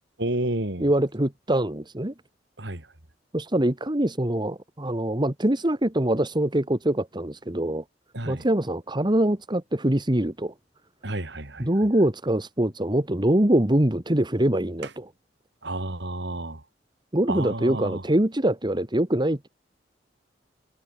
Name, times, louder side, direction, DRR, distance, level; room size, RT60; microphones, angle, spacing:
voice 1, 0.2-0.9 2.6-2.9 8.1-8.5 11.0-11.7 14.8-14.9 15.6-16.6 17.3-18.0, right 1 dB, 70° right, 3.7 m, -30 dB
voice 2, 0.8-2.1 3.3-7.8 8.3-10.5 11.6-15.1 17.1-19.5, right 1 dB, 25° right, 1.9 m, -24 dB
head